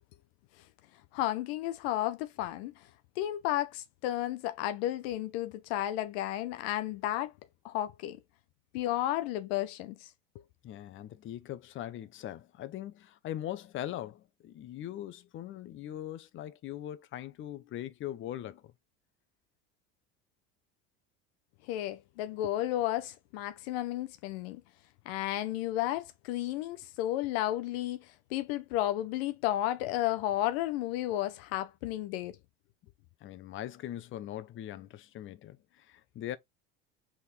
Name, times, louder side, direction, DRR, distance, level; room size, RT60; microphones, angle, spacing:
voice 1, 1.1-2.7 3.2-7.3 7.6-8.2 8.7-10.1 21.7-24.6 25.1-32.4, left 14 dB, 75° left, 0.5 m, -32 dB
voice 2, 10.6-18.7 33.2-36.4, left 12 dB, 40° left, 0.7 m, -41 dB
3.9 x 3.6 x 3.1 m
supercardioid pair, 90°, 31 cm